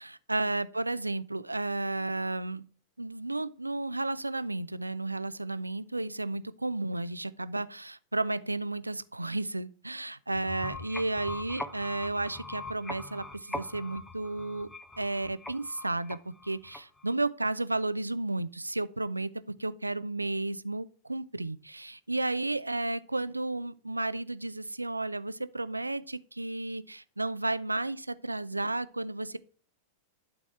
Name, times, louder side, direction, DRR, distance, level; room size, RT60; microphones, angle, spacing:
voice 1, 0.0-2.6 3.0-14.7 15.0-19.3 19.6-29.4, right 2 dB, 90° right, 0.4 m, -33 dB
sound 1, 10.3-17.1, left 2 dB, 5° left, 0.7 m, -42 dB
11.5 x 4.2 x 4.6 m
figure-of-eight pair, 95°, 0 cm